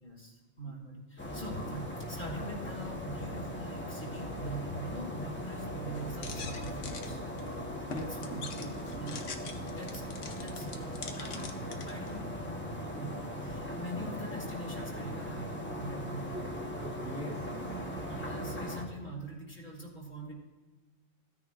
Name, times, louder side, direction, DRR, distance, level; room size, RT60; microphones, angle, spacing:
voice 1, 0.0-7.2 8.4-9.2 9.8-10.0 10.4-11.5 11.9-16.5 18.1-20.3, right 1 dB, 40° left, -3 dB, 2.8 m, -43 dB
sound 1, 1.2-18.8, equal, 10° left, 1.0 m, -39 dB
sound 2, 5.9-12.2, left 5 dB, 75° left, 1.2 m, -45 dB
voice 2, 7.9-8.7 9.0-9.2 9.6-9.8 13.9-14.1 16.3-17.8, right 1 dB, 10° right, -2 dB, 1.2 m, -44 dB
15.5 x 9.5 x 2.5 m, 1.3 s
omnidirectional pair, 1.3 m